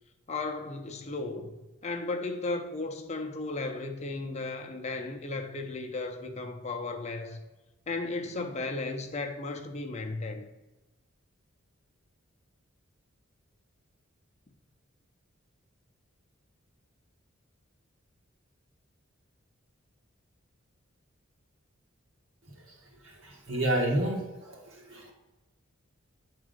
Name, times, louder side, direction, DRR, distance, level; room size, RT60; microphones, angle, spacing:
voice 1, 0.3-1.5 1.8-7.4 7.9-10.5, left 3 dB, 30° left, 0.5 m, -35 dB
voice 2, 23.2-24.6 24.9-25.1, right 1 dB, 70° right, 1.7 m, -29 dB
7.8 x 3.7 x 5.1 m
head